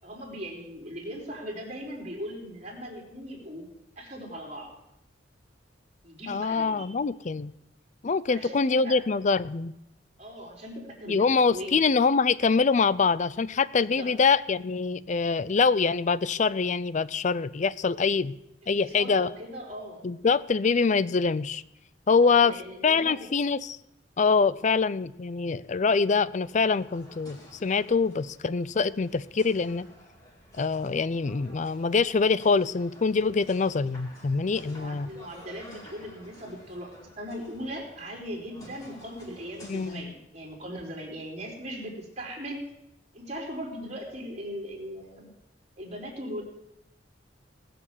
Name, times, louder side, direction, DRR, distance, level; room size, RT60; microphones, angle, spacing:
voice 1, 0.0-3.7 4.0-4.7 6.0-6.9 8.3-9.0 10.2-11.8 13.8-14.1 18.6-20.1 22.2-23.3 34.6-42.6 43.1-45.3 45.8-46.4, equal, 40° right, -1 dB, 4.0 m, -39 dB
voice 2, 6.3-7.5 8.0-9.7 11.1-18.3 18.7-19.3 20.0-21.6 22.1-22.5 22.8-23.8 24.2-29.9 30.6-35.1 39.7-40.1, left 4 dB, 40° left, 17 dB, 0.4 m, -24 dB
sound 1, 26.4-40.0, equal, 20° left, 4.5 m, -52 dB
19.0 x 6.8 x 7.4 m, 0.84 s
head